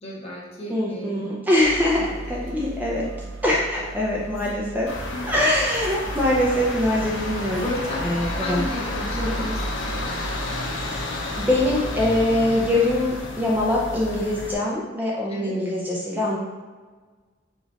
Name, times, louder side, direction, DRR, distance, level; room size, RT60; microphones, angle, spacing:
voice 1, 0.0-1.2 2.1-2.2 5.1-5.3 7.6-8.0 8.4-9.4 9.7-10.1 15.3-15.5, left 1 dB, 35° left, -5 dB, 1.2 m, -33 dB
voice 2, 0.7-3.1 3.4-4.9 5.3-7.7 8.0-8.7 9.1-9.5 10.9-16.4, left 1 dB, 10° right, -4 dB, 0.5 m, -23 dB
sound 1, 1.6-10.3, right 2 dB, 90° right, 0.5 m, -38 dB
sound 2, 4.9-14.5, left 1 dB, 80° left, 0.7 m, -31 dB
5.0 x 2.5 x 4.0 m, 1.4 s
head